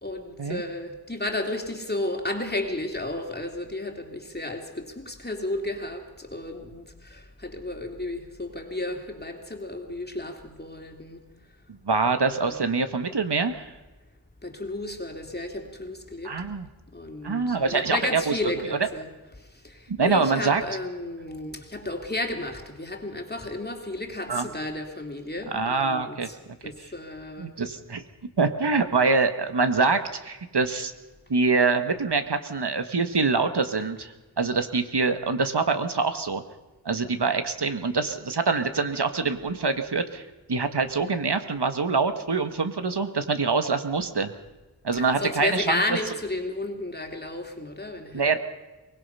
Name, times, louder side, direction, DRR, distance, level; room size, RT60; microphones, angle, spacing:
voice 1, 0.0-11.2 12.2-12.6 14.4-16.4 16.9-26.4 26.6-27.5 44.9-48.4, left 2 dB, 25° left, 2.7 m, -33 dB
voice 2, 11.7-13.7 16.2-16.7 17.2-18.8 19.9-20.6 24.3-24.5 25.5-26.3 26.8-26.9 27.4-28.0 28.4-30.9 31.3-36.4 36.8-40.2 40.5-44.3 44.8-46.0 48.1-48.4, right 4 dB, 75° right, 1.7 m, -25 dB
23.5 x 20.0 x 5.7 m
wide cardioid pair, 70°, 41 cm